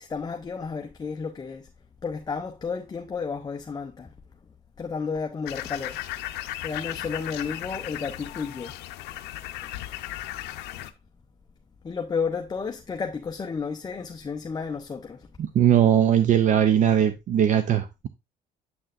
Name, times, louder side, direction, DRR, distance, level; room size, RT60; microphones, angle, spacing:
voice 1, 0.0-1.7 2.0-4.1 4.4-6.0 6.6-8.8 11.8-15.3, left 5 dB, 25° left, 0.7 m, -32 dB
sound 1, 5.4-10.9, left 14 dB, 90° left, 0.6 m, -36 dB
voice 2, 15.4-18.1, right 9 dB, 50° right, 0.5 m, -20 dB
7.7 x 6.2 x 2.5 m
cardioid pair, 110°, 17 cm